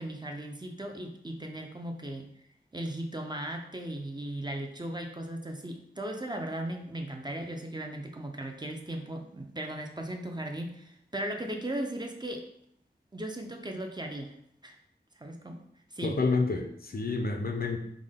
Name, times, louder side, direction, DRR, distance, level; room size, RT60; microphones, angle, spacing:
voice 1, 0.0-2.3 2.7-12.5 13.1-14.3 14.6-14.8 15.2-15.6 15.9-16.2, right 1 dB, 25° right, 3 dB, 0.4 m, -37 dB
voice 2, 16.0-17.8, left 3 dB, 55° left, 4 dB, 0.4 m, -29 dB
3.5 x 2.1 x 3.5 m, 0.70 s
wide cardioid pair, 50°, 18 cm